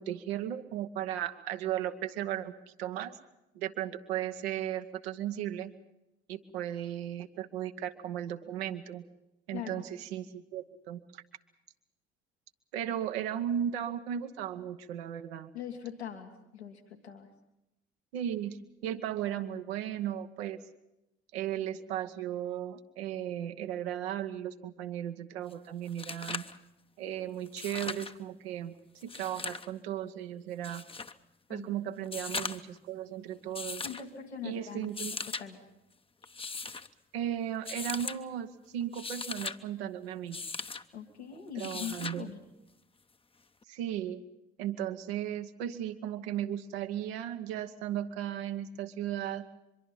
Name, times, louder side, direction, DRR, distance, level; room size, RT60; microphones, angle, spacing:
voice 1, 0.0-2.5 2.8-3.2 3.5-5.7 6.3-9.0 9.5-11.2 12.7-15.5 18.1-20.6 21.3-26.4 27.0-28.7 29.0-30.8 31.5-33.9 34.4-35.2 37.1-40.4 41.5-42.3 43.7-44.2 44.6-49.5, right 10 dB, 70° right, 8 dB, 1.2 m, -36 dB
voice 2, 9.5-9.8 15.5-17.3 31.5-31.7 33.8-34.9 35.2-35.6 40.9-42.4, left 8 dB, 80° left, 3 dB, 1.8 m, -42 dB
sound 1, 25.5-25.6 25.9-26.6 27.5-28.1 29.0-29.7 30.6-31.1 32.0-32.8 33.5-34.0 34.8-35.4 36.2-36.9 37.6-38.2 38.8-39.6 40.3-40.8 41.6-42.2 43.6-43.7, left 4 dB, 15° left, 0.8 m, -38 dB
24.0 x 23.0 x 5.6 m, 0.90 s
figure-of-eight pair, 45°, 32 cm